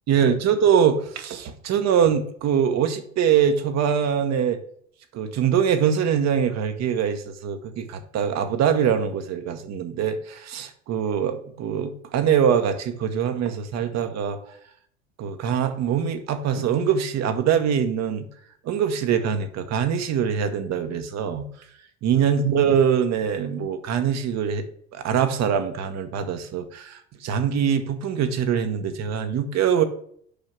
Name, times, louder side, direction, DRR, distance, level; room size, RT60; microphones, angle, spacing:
voice 1, 0.1-4.6 5.1-14.4 15.2-18.3 18.6-21.5 22.0-24.6 24.9-29.8, right 8 dB, 50° right, 8 dB, 1.0 m, -23 dB
5.3 x 5.1 x 6.0 m, 0.62 s
hypercardioid pair, 70°, 36 cm